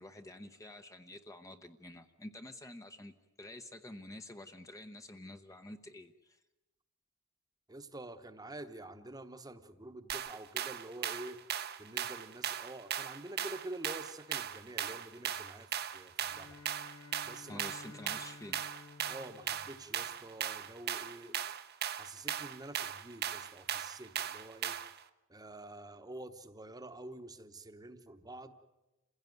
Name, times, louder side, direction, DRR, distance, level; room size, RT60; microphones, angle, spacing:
voice 1, 0.0-6.4 17.5-18.7, left 1 dB, 15° left, 7 dB, 0.8 m, -49 dB
voice 2, 7.7-11.4 11.8-16.6 17.2-17.7 18.1-18.2 19.1-21.4 21.9-24.8 25.3-28.5, right 2 dB, 20° right, 9 dB, 1.1 m, -48 dB
sound 1, 10.1-25.0, right 9 dB, 50° right, 0.9 m, -38 dB
Bowed string instrument, 16.2-20.7, left 4 dB, 70° left, 0.9 m, -55 dB
28.0 x 16.0 x 9.2 m, 1.1 s
head